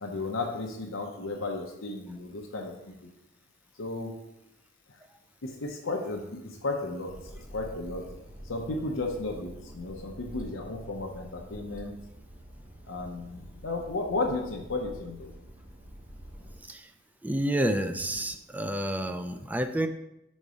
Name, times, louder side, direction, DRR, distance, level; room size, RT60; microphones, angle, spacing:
voice 1, 0.0-3.1 3.8-4.1 5.4-7.1 7.5-8.0 8.4-11.9 12.9-15.3, left 2 dB, 85° left, 1 dB, 0.8 m, -34 dB
sound 1, 7.1-16.6, equal, 25° right, 0.9 m, -47 dB
voice 2, 17.2-19.9, right 1 dB, 10° right, 8 dB, 0.3 m, -29 dB
5.4 x 4.0 x 4.9 m, 0.85 s
head